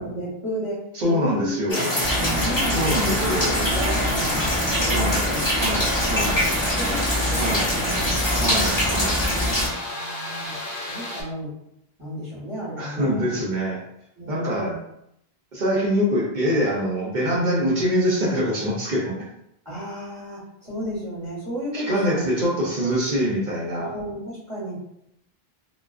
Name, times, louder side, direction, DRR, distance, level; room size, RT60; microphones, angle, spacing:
voice 1, 0.0-1.6 2.2-3.1 3.5-5.4 6.3-8.2 9.8-10.6 10.9-11.5 12.0-13.3 14.2-14.7 19.6-22.3 22.8-22.9 23.7-24.8, right 1 dB, 25° right, -10 dB, 1.1 m, -33 dB
voice 2, 1.0-1.9 2.7-3.6 4.9-5.3 5.6-6.5 7.3-7.7 8.3-9.2 12.8-13.8 14.3-14.7 15.5-19.2 21.7-23.9, equal, 55° right, -4 dB, 0.7 m, -24 dB
sound 1, 1.7-9.7, equal, 30° left, 0.8 m, -24 dB
sound 2, 2.0-9.7, left 1 dB, ahead, 0.5 m, -28 dB
sound 3, 5.9-11.2, left 1 dB, 60° left, 0.8 m, -33 dB
2.3 x 2.3 x 2.3 m, 0.78 s
omnidirectional pair, 1.0 m